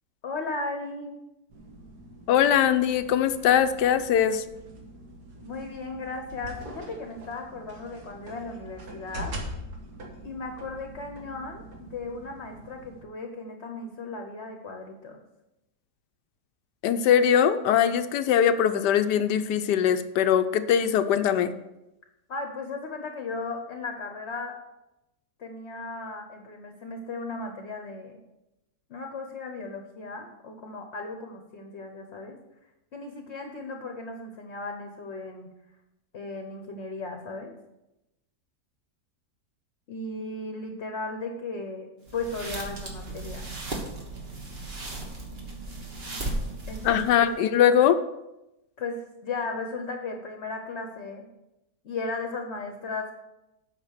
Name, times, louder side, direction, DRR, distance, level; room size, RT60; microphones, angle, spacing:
voice 1, 0.2-1.2 5.4-9.3 10.2-15.2 22.3-24.6 25.4-28.2 28.9-32.4 32.9-35.5 36.1-37.5 39.9-43.5 46.7-47.3 48.8-51.3 51.8-53.2, left 3 dB, 45° left, 4 dB, 1.1 m, -36 dB
sound 1, 1.5-13.0, equal, 70° right, 2.0 m, -43 dB
voice 2, 2.3-4.4 16.8-21.5 46.8-48.0, left 9 dB, 80° left, 10 dB, 1.2 m, -21 dB
sound 2, 42.0-47.3, right 2 dB, 35° right, 1.6 m, -36 dB
8.7 x 5.8 x 6.5 m, 0.94 s
omnidirectional pair, 1.8 m